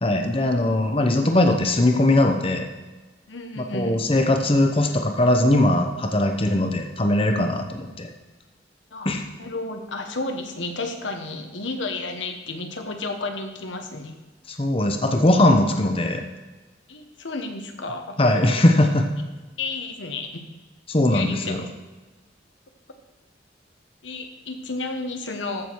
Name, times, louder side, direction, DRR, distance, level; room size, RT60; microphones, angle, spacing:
voice 1, 0.0-2.7 3.6-8.1 9.0-9.2 14.5-16.2 18.2-19.1 20.9-21.6, left 1 dB, 30° left, 4 dB, 0.8 m, -20 dB
voice 2, 3.3-4.0 8.9-9.1 9.4-14.1 16.9-18.2 19.6-20.5 21.1-21.6 24.0-25.7, left 3 dB, 90° left, 5 dB, 1.3 m, -32 dB
14.0 x 6.2 x 4.7 m, 1.2 s
head